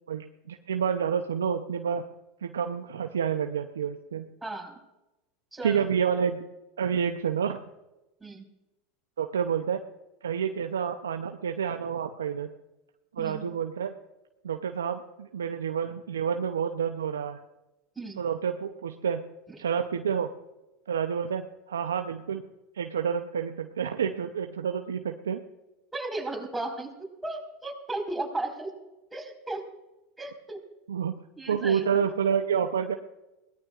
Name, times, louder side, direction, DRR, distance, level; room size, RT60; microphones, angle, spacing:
voice 1, 0.1-2.0 2.4-4.3 5.6-6.4 6.8-7.6 9.2-9.8 10.2-12.5 13.1-13.9 14.4-17.4 18.2-19.2 19.6-20.3 20.9-22.4 22.8-25.4 30.9-31.1 31.5-33.0, right 7 dB, 85° right, 6 dB, 0.6 m, -29 dB
voice 2, 4.4-4.8 5.5-5.9 8.2-8.5 13.2-13.5 17.9-18.2 25.9-28.7 29.1-29.7 30.2-30.6 31.4-32.0, right 2 dB, 10° right, -1 dB, 4.6 m, -35 dB
21.5 x 18.0 x 2.5 m, 0.99 s
hypercardioid pair, 90°, 0 cm